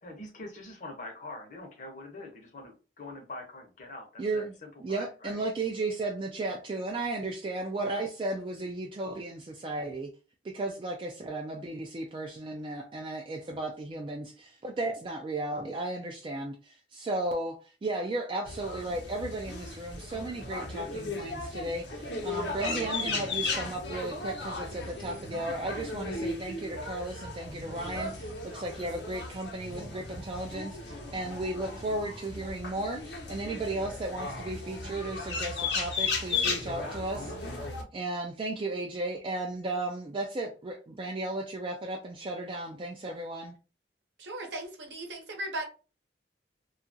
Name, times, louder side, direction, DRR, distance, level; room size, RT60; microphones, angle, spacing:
voice 1, 0.0-5.4, left 2 dB, 45° left, 0.8 m, -44 dB
voice 2, 4.2-4.5 4.8-10.1 10.4-43.5, right 2 dB, 30° right, 0.3 m, -35 dB
sound 1, 18.5-37.8, left 3 dB, 75° left, 0.8 m, -36 dB
voice 3, 44.2-45.6, right 1 dB, 80° right, 0.8 m, -37 dB
2.8 x 2.3 x 2.6 m
head